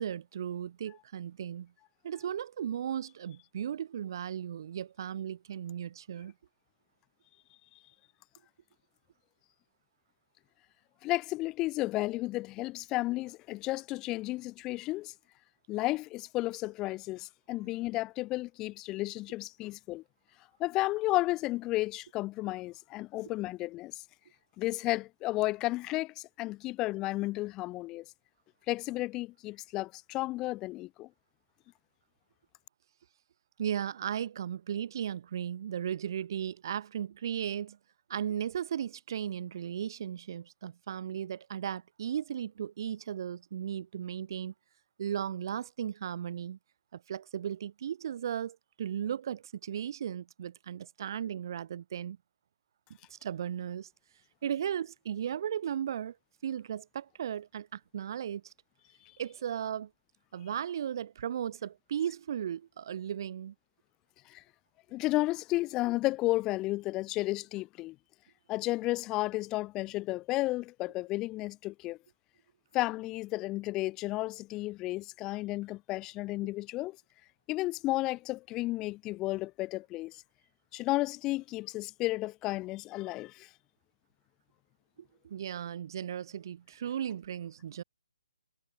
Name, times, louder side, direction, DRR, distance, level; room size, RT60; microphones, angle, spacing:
voice 1, 0.0-1.7 2.0-6.3 33.6-37.8 38.1-44.5 45.0-46.6 46.9-52.2 53.1-53.9 54.4-56.2 56.4-58.5 59.2-59.9 60.3-63.5 85.2-87.8, right 9 dB, 40° right, 1.9 m, -36 dB
voice 2, 11.0-15.1 15.7-20.0 20.6-24.0 24.6-28.0 28.7-31.1 64.3-64.4 64.9-68.0 68.5-72.0 72.7-77.0 77.5-80.2 80.7-83.5, left 18 dB, 15° left, 0.4 m, -33 dB
figure-of-eight pair, 140°, 3 cm